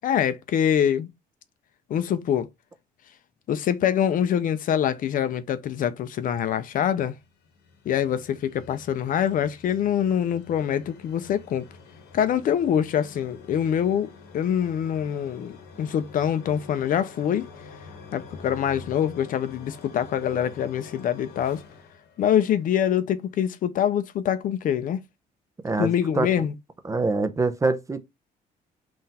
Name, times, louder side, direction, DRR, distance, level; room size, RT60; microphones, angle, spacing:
voice 1, 0.0-1.1 1.9-2.5 3.5-7.1 7.9-11.7 12.1-17.5 18.1-21.6 22.2-25.0 25.8-26.5, left 9 dB, 55° left, 0.5 m, -24 dB
sound 1, 7.0-22.9, left 4 dB, 75° left, 1.0 m, -47 dB
voice 2, 25.6-26.3 26.8-28.0, right 3 dB, 20° right, 0.5 m, -24 dB
3.8 x 2.5 x 4.1 m
cardioid pair, 110°, 17 cm